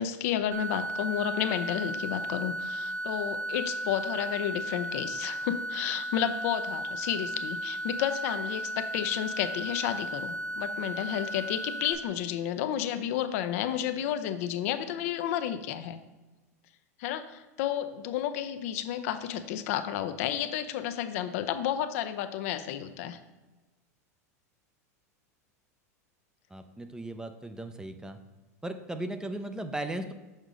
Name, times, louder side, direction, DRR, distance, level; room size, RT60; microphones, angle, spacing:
voice 1, 0.0-16.0 17.0-23.2, left 10 dB, 60° left, 10 dB, 0.5 m, -31 dB
sound 1, 0.5-11.9, right 1 dB, 90° right, 1.0 m, -35 dB
voice 2, 26.5-28.2 28.6-30.1, right 1 dB, 10° right, 8 dB, 0.5 m, -37 dB
6.5 x 3.6 x 5.1 m, 1.2 s
hypercardioid pair, 100°, 9 cm